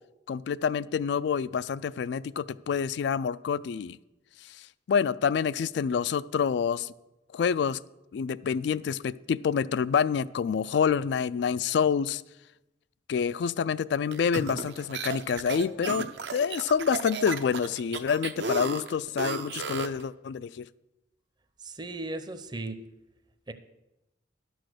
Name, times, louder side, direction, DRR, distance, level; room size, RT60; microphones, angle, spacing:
voice 1, 0.3-4.0 4.5-6.9 7.3-7.8 8.1-12.2 13.1-16.1 16.3-20.7, left 6 dB, 65° left, 18 dB, 0.3 m, -27 dB
sound 1, 14.1-20.0, right 4 dB, 70° right, 0.8 m, -34 dB
voice 2, 21.6-22.8 23.5-23.6, right 2 dB, 25° right, 10 dB, 0.6 m, -36 dB
11.5 x 6.3 x 6.5 m, 0.96 s
head